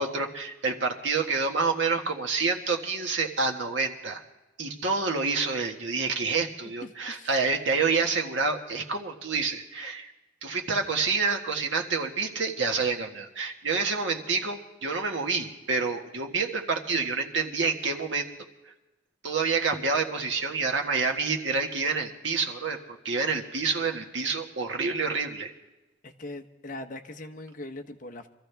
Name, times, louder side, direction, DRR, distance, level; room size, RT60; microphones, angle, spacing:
voice 1, 0.0-4.2 4.6-10.1 10.4-18.3 19.2-25.5, right 4 dB, 85° right, 3 dB, 1.6 m, -28 dB
voice 2, 6.8-7.3 26.0-28.3, left 2 dB, 45° left, 6 dB, 1.0 m, -41 dB
24.5 x 14.0 x 3.4 m, 1.0 s
head